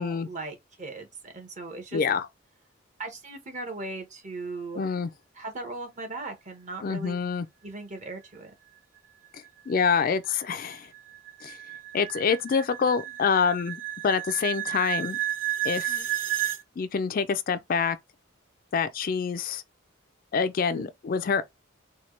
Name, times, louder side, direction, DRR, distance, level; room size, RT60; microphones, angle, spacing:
voice 1, 0.0-2.0 3.0-4.9 5.4-7.2 7.6-8.5 15.9-16.1 20.7-20.9, right 3 dB, 40° right, 1.0 m, -38 dB
voice 2, 1.9-2.3 4.7-5.1 6.8-7.5 9.3-10.9 11.4-11.6 11.9-15.2 15.6-16.0 16.8-18.0 18.7-19.6 20.3-21.4, left 6 dB, 45° left, 0.3 m, -26 dB
sound 1, 9.5-16.6, right 13 dB, 70° right, 0.6 m, -32 dB
4.3 x 2.2 x 3.1 m
head